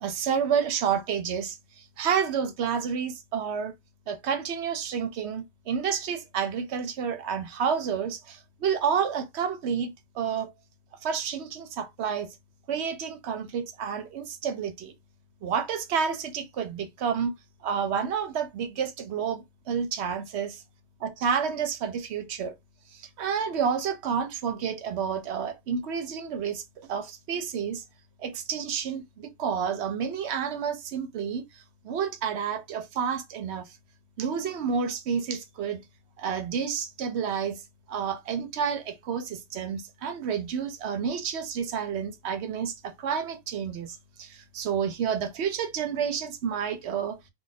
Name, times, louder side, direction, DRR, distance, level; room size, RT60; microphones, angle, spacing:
voice 1, 0.0-3.7 4.1-10.5 11.0-12.3 12.7-14.9 15.4-17.3 17.6-20.6 21.0-22.5 22.9-27.8 28.2-33.8 34.2-35.8 36.2-37.6 37.9-47.2, right 7 dB, 75° right, 0.9 m, -30 dB
2.4 x 2.2 x 4.0 m
omnidirectional pair, 1.1 m